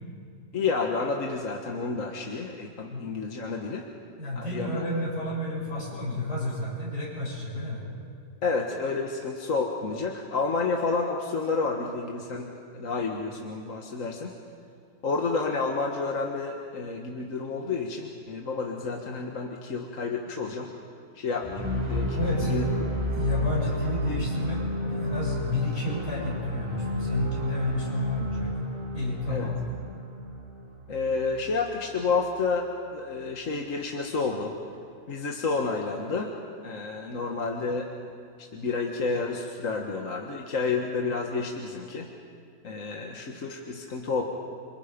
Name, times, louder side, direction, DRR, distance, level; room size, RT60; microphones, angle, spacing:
voice 1, 0.5-3.9 4.3-4.9 8.4-14.3 15.0-20.7 21.2-22.2 22.5-22.6 29.3-29.5 30.9-34.6 35.1-37.9 38.4-42.1 42.6-44.2, left 4 dB, 50° left, 1 dB, 1.8 m, -30 dB
voice 2, 4.2-7.8 22.2-22.6 23.1-28.5 28.9-29.5, left 1 dB, 70° left, -5 dB, 8.1 m, -30 dB
sound 1, 21.4-31.5, equal, 15° right, 5.4 m, -32 dB
28.5 x 25.5 x 5.2 m, 2.3 s
omnidirectional pair, 1.8 m